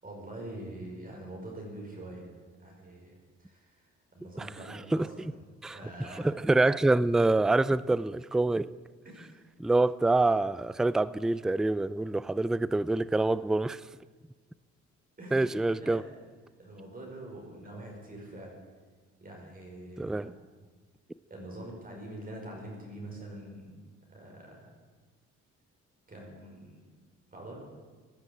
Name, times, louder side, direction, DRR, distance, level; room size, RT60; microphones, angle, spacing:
voice 1, 0.0-2.3 2.6-3.1 3.4-3.8 4.1-5.3 5.7-6.3 9.1-9.5 15.2-16.0 16.6-18.5 19.2-20.3 21.3-23.8 24.1-24.7 26.1-26.9 27.3-27.6, right 1 dB, 30° right, 0 dB, 5.4 m, -44 dB
voice 2, 5.6-8.7 9.6-13.8 15.3-16.0 20.0-20.3, right 2 dB, ahead, 18 dB, 0.4 m, -26 dB
16.5 x 10.0 x 8.5 m, 1.4 s
cardioid pair, 90°, 30 cm